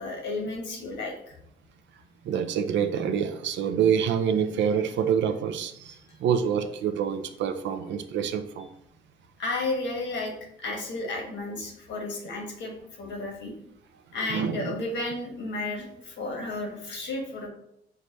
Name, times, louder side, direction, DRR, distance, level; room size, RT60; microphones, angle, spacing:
voice 1, 0.0-1.4 6.1-6.2 9.4-10.3 10.6-13.5 14.1-17.5, left 2 dB, 70° left, 1 dB, 1.3 m, -33 dB
voice 2, 2.2-8.7 14.3-14.7, right 8 dB, 70° right, 9 dB, 0.5 m, -26 dB
4.7 x 2.2 x 4.0 m, 0.74 s
supercardioid pair, 70°, 19 cm